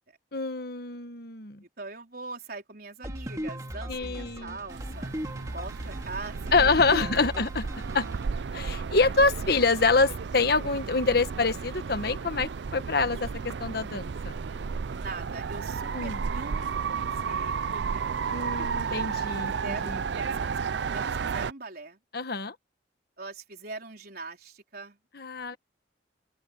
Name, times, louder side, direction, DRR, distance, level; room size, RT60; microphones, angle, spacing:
voice 1, 0.3-1.6 3.9-4.6 6.5-7.7 7.9-8.0 8.5-14.3 15.9-16.2 18.3-20.0 22.1-22.5 25.1-25.6, left 3 dB, 60° left, 1.4 m, -26 dB
voice 2, 1.6-5.1 5.5-7.5 14.9-18.1 18.6-18.7 19.3-22.0 23.2-25.0 25.5-25.6, right 3 dB, 60° right, 4.4 m, -42 dB
sound 1, 3.0-8.2, equal, 20° right, 2.1 m, -37 dB
sound 2, 4.7-21.5, right 5 dB, 75° right, 0.5 m, -33 dB
open air
head